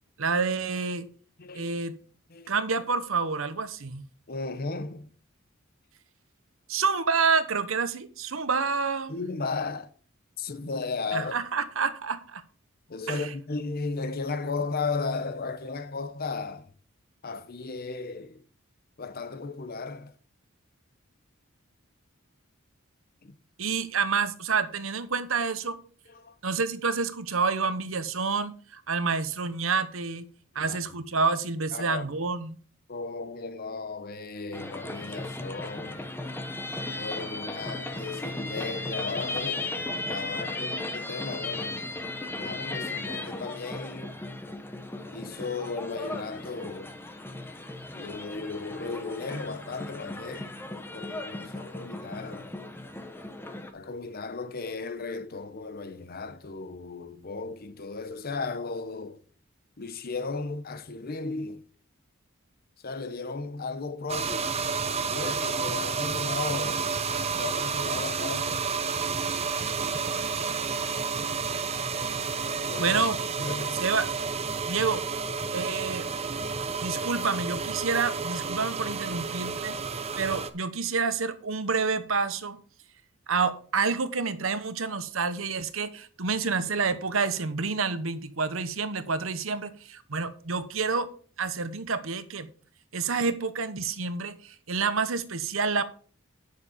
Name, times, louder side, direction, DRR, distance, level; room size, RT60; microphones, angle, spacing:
voice 1, 0.2-1.1 1.5-1.9 2.5-4.0 6.7-9.1 11.1-12.4 13.1-13.3 23.6-25.8 26.4-30.3 30.5-32.6 72.8-73.2 73.8-74.1 74.7-75.0 75.5-76.1 76.8-79.8 80.1-82.6 83.3-91.1 91.4-92.5 92.9-95.8, right 4 dB, 70° right, 1.0 m, -28 dB
voice 2, 1.4-1.7 2.3-2.6 4.3-5.1 9.1-9.9 10.4-11.4 12.9-16.7 17.2-18.4 19.0-20.1 23.2-23.4 26.1-26.4 30.5-30.8 31.7-32.2 32.9-36.0 37.0-39.7 40.1-41.9 42.3-44.2 45.1-47.0 47.9-50.5 50.9-52.5 53.7-59.2 59.8-61.6 62.8-64.6 65.0-66.9 67.4-68.6 72.7-73.0 73.4-73.9, left 4 dB, 45° left, 0.8 m, -35 dB
sound 1, 34.5-53.7, left 2 dB, 10° left, 1.0 m, -36 dB
sound 2, 64.1-80.5, right 5 dB, 30° right, 0.7 m, -30 dB
9.6 x 6.7 x 5.0 m
head